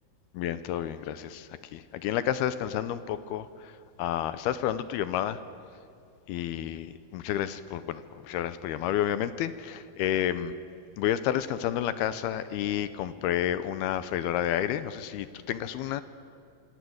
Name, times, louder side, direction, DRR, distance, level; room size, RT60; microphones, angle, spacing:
voice 1, 0.3-3.7 4.0-5.4 6.3-10.5 11.0-16.0, left 11 dB, 75° left, 13 dB, 2.6 m, -30 dB
26.0 x 25.5 x 7.9 m, 2.5 s
omnidirectional pair, 4.8 m